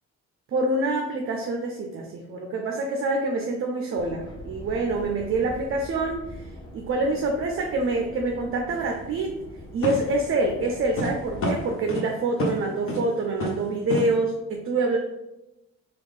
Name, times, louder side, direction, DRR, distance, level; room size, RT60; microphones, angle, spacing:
voice 1, 0.5-9.4 9.7-15.0, right 2 dB, 45° right, 2 dB, 0.5 m, -26 dB
sound 1, 4.0-11.6, left 1 dB, 15° left, 0.8 m, -43 dB
sound 2, 8.7-8.8 9.8-10.2 11.0-11.1 11.4-12.1 12.4-12.6 12.9-13.1 13.4-13.6 13.9-14.1, left 1 dB, 45° left, 0.7 m, -28 dB
3.4 x 2.4 x 3.2 m, 0.93 s
cardioid pair, 90°, 30 cm